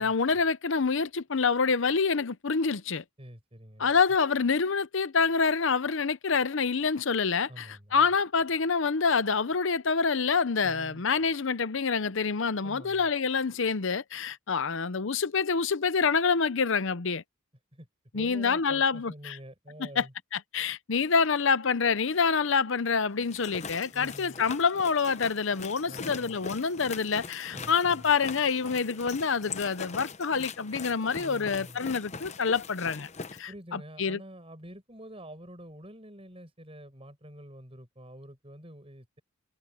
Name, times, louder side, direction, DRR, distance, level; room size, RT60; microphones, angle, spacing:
voice 1, 0.0-3.0 3.8-17.2 18.1-19.4 19.8-20.1 20.3-33.1 33.4-34.2, left 5 dB, 60° left, 0.7 m, -27 dB
voice 2, 3.2-3.9 7.5-8.1 10.6-11.0 12.6-13.1 17.7-17.9 18.1-20.1 23.9-24.4 25.8-26.4 27.5-28.1 31.2-31.8 33.5-39.2, equal, 25° right, 7.7 m, -47 dB
sound 1, 23.2-33.4, left 5 dB, 30° left, 0.9 m, -42 dB
head